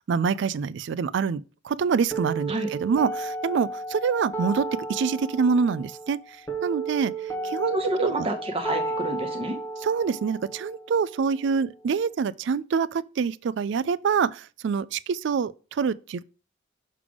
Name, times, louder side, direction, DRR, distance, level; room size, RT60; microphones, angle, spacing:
voice 1, 0.1-6.2 6.6-7.1 7.4-8.1 9.8-16.2, right 6 dB, 60° right, 0.3 m, -26 dB
sound 1, 2.1-12.1, right 2 dB, 15° left, 1.4 m, -33 dB
voice 2, 7.7-9.6, right 1 dB, 30° right, 1.2 m, -29 dB
6.6 x 3.4 x 4.9 m
head